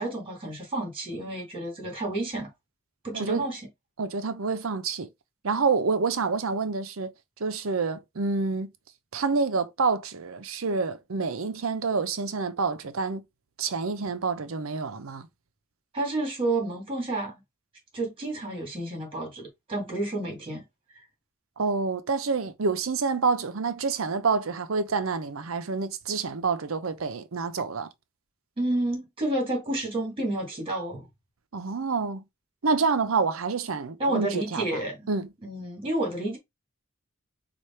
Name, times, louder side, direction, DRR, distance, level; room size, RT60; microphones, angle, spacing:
voice 1, 0.0-2.5 3.0-3.6 15.9-17.4 17.9-20.7 28.6-31.1 34.0-35.0 35.4-36.4, right 2 dB, 25° right, 2.1 m, -30 dB
voice 2, 3.1-3.5 4.0-5.1 5.4-7.1 7.4-8.7 9.1-13.2 13.6-15.3 21.6-27.9 31.5-32.2 32.6-34.8 35.1-35.3, right 4 dB, 80° right, 0.7 m, -27 dB
4.8 x 2.5 x 4.3 m
head